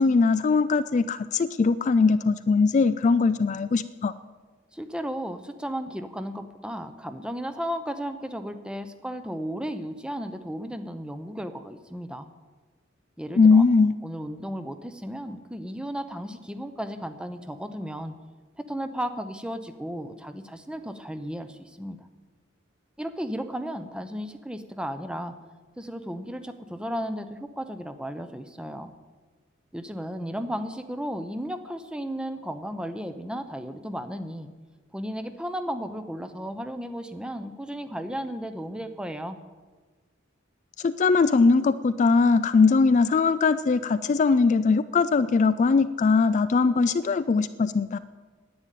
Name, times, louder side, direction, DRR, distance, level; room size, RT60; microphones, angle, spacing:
voice 1, 0.0-4.1 13.4-13.9 40.8-48.0, left 4 dB, 40° left, 13 dB, 0.3 m, -21 dB
voice 2, 4.7-12.3 13.2-13.7 14.0-18.1 18.6-22.1 23.0-25.3 25.8-28.9 29.7-34.5 34.9-39.4, equal, 5° right, 9 dB, 0.7 m, -34 dB
10.5 x 8.8 x 9.2 m, 1.4 s
head